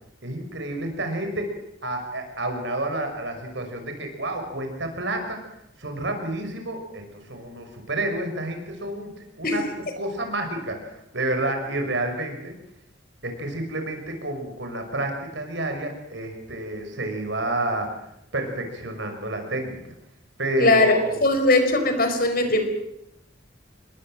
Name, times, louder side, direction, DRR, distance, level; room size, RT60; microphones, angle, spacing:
voice 1, 0.2-1.6 1.8-5.4 5.8-9.7 10.0-12.5 13.2-17.9 18.3-19.8 20.4-21.2, right 1 dB, 65° right, 5 dB, 5.8 m, -29 dB
voice 2, 20.6-20.9 21.2-22.7, left 2 dB, 50° left, 7 dB, 4.9 m, -19 dB
27.5 x 22.0 x 7.6 m, 0.80 s
head